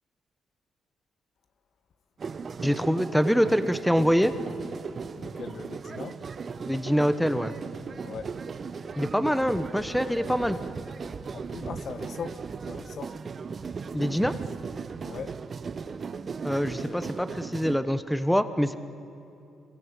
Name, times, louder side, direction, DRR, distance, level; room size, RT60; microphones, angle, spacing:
sound 1, 2.2-17.8, right 5 dB, 40° right, 1.0 m, -37 dB
voice 1, 2.6-4.3 6.7-7.5 9.0-10.6 13.9-14.4 16.4-18.8, equal, 5° left, 1.1 m, -25 dB
voice 2, 5.1-6.2 8.0-8.3 11.3-13.2 15.0-15.4 16.7-17.1, left 6 dB, 60° left, 1.3 m, -40 dB
26.5 x 22.5 x 8.4 m
cardioid pair, 90°, 0 cm